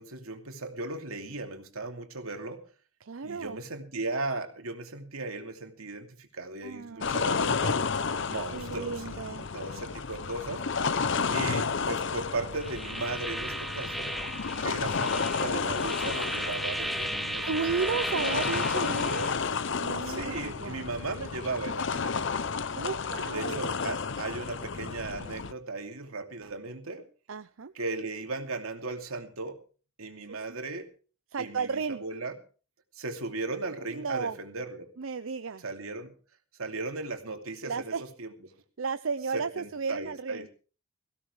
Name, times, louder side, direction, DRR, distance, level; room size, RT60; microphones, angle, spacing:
voice 1, 0.0-2.7 3.2-7.8 8.3-10.7 11.3-14.2 14.6-17.5 20.0-22.2 23.3-27.0 27.7-29.6 30.0-30.9 31.4-32.3 32.9-34.9 35.6-36.1 36.6-37.9 38.2-38.3 39.3-40.5, right 3 dB, 90° right, 4 dB, 2.6 m, -36 dB
voice 2, 3.0-3.6 6.6-7.4 8.5-9.5 14.6-15.0 17.5-19.3 19.8-20.9 22.8-23.7 27.3-27.7 30.3-30.4 31.3-32.0 33.9-34.4 35.0-35.6 37.6-38.0 38.8-40.5, right 5 dB, 70° right, 12 dB, 0.6 m, -34 dB
sound 1, 7.0-25.5, left 5 dB, 55° left, 0.7 m, -32 dB
sound 2, 12.6-19.4, right 1 dB, ahead, 1.2 m, -35 dB
18.5 x 16.0 x 3.3 m, 0.37 s
head